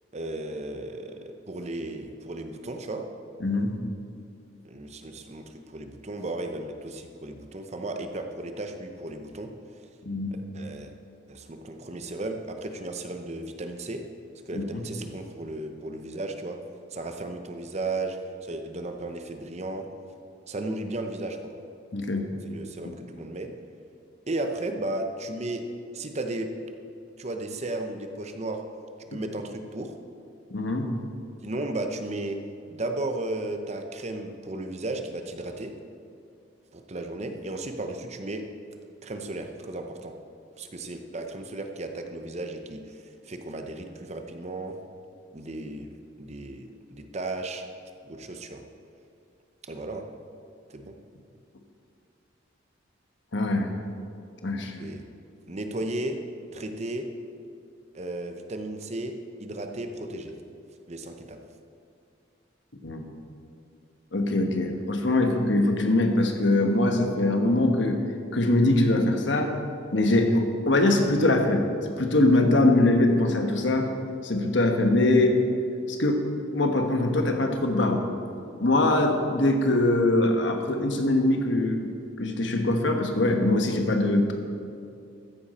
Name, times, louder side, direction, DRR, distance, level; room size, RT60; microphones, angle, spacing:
voice 1, 0.1-3.1 4.6-9.5 10.5-10.9 11.3-14.0 14.5-16.6 16.9-18.2 18.4-19.9 20.5-21.5 22.4-23.5 24.3-25.6 25.9-26.5 27.2-28.6 29.1-29.9 31.4-32.4 32.7-35.8 36.7-38.5 39.0-40.1 40.6-44.8 45.3-45.9 46.2-47.6 48.0-48.6 49.7-50.0 50.7-51.0 54.8-55.0 55.5-56.2 56.5-57.1 57.9-60.4 60.9-61.4 78.9-79.0, right 2 dB, 35° right, 5 dB, 0.8 m, -34 dB
voice 2, 3.4-3.8 10.0-10.3 14.5-14.8 21.9-22.3 30.5-30.9 53.3-53.7 54.4-54.8 62.8-63.1 64.1-68.0 68.3-69.5 69.9-71.6 72.0-73.9 74.2-75.4 75.9-76.2 76.5-78.1 78.6-81.9 82.2-84.3, left 2 dB, 65° left, 4 dB, 1.2 m, -22 dB
14.0 x 10.0 x 4.3 m, 2.4 s
head